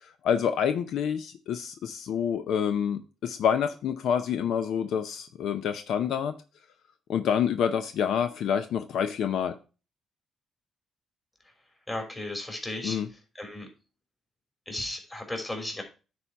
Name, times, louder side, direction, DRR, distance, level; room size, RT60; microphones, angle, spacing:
voice 1, 0.0-6.3 7.1-9.6 12.8-13.1, left 8 dB, 75° left, 9 dB, 0.7 m, -27 dB
voice 2, 11.9-13.0 13.4-13.7 14.6-15.8, left 1 dB, 20° left, 3 dB, 3.3 m, -35 dB
9.7 x 4.4 x 4.5 m, 0.32 s
cardioid pair, 90°, 0 cm